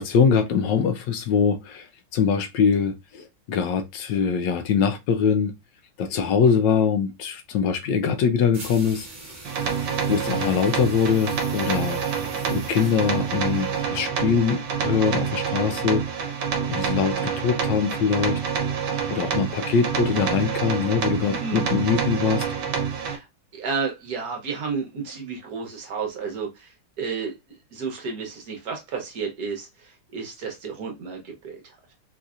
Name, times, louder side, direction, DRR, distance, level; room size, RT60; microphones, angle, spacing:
voice 1, 0.0-1.9 2.1-5.5 6.0-9.1 10.1-12.0 12.5-16.0 16.7-18.4 19.1-22.5, left 6 dB, 75° left, 1.2 m, -23 dB
sound 1, 8.5-14.1, right 2 dB, 40° right, 1.4 m, -43 dB
sound 2, 9.4-23.2, right 7 dB, 75° right, 1.4 m, -27 dB
voice 2, 21.2-21.6 22.9-23.2 23.5-27.3 27.7-31.8, right 5 dB, 60° right, 1.3 m, -32 dB
4.2 x 2.6 x 2.4 m
omnidirectional pair, 2.1 m